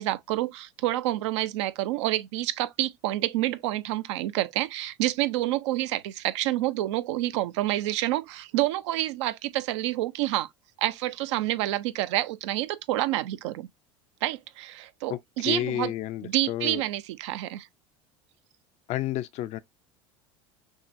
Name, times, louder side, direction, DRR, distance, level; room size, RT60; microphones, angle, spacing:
voice 1, 0.0-10.5 10.8-13.7 14.2-15.9 16.2-17.7, right 15 dB, 75° right, 0.5 m, -28 dB
voice 2, 15.5-16.8 18.9-19.6, left 13 dB, 50° left, 0.4 m, -30 dB
6.2 x 2.1 x 2.5 m
hypercardioid pair, 85°, 15 cm